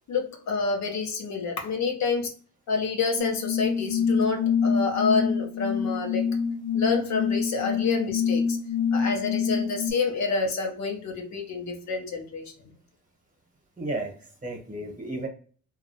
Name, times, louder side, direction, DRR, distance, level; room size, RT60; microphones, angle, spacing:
voice 1, 0.1-2.3 2.7-6.4 6.7-8.6 8.9-12.7, left 4 dB, 65° left, 2 dB, 0.8 m, -28 dB
sound 1, 3.2-9.9, left 6 dB, 85° right, 0.5 m, -26 dB
voice 2, 13.8-15.3, right 2 dB, 25° right, 2 dB, 1.0 m, -33 dB
2.9 x 2.4 x 2.7 m, 0.42 s
cardioid pair, 90°, 30 cm